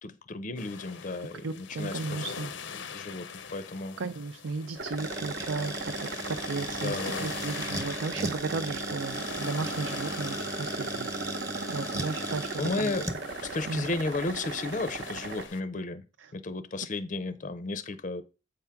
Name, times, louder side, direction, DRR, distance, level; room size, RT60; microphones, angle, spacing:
voice 1, 0.0-2.2 2.9-4.0 6.8-7.3 12.6-13.1 13.4-16.0 16.3-18.2, left 3 dB, 45° left, 0.5 m, -34 dB
sound 1, 0.6-15.6, left 6 dB, 85° left, 0.7 m, -43 dB
voice 2, 1.4-2.5 4.0-11.1 11.7-13.0 13.7-13.9 16.2-16.3, right 4 dB, 80° right, 0.5 m, -35 dB
sound 2, 4.8-15.5, right 3 dB, 60° right, 0.9 m, -37 dB
sound 3, 5.0-13.2, right 1 dB, 20° right, 0.9 m, -38 dB
7.8 x 3.5 x 5.7 m
head